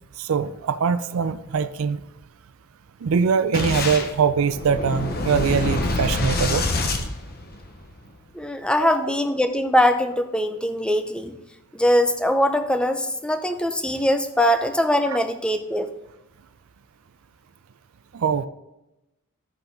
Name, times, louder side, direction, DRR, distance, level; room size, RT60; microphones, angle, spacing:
voice 1, 0.2-2.0 3.0-6.7 8.8-9.1 15.1-15.2 18.1-18.5, right 6 dB, 75° right, 12 dB, 0.4 m, -23 dB
Boom, 3.5-7.9, left 2 dB, 45° left, 0.9 m, -26 dB
voice 2, 8.3-11.4 11.7-15.9, equal, 5° left, 8 dB, 0.5 m, -22 dB
13.0 x 5.7 x 3.9 m, 0.94 s
head